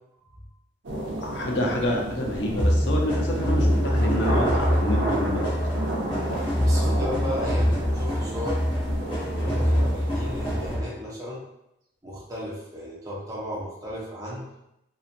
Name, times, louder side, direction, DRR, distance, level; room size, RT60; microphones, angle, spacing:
sound 1, 0.8-10.8, right 1 dB, 85° right, 0.7 m, -32 dB
voice 1, 1.2-5.5, equal, 65° left, -1 dB, 0.6 m, -28 dB
sound 2, 2.6-11.0, equal, 25° left, 0.9 m, -25 dB
voice 2, 6.6-8.6 9.4-11.4 12.0-14.5, equal, 15° right, -5 dB, 0.6 m, -35 dB
2.8 x 2.4 x 2.5 m, 0.84 s
head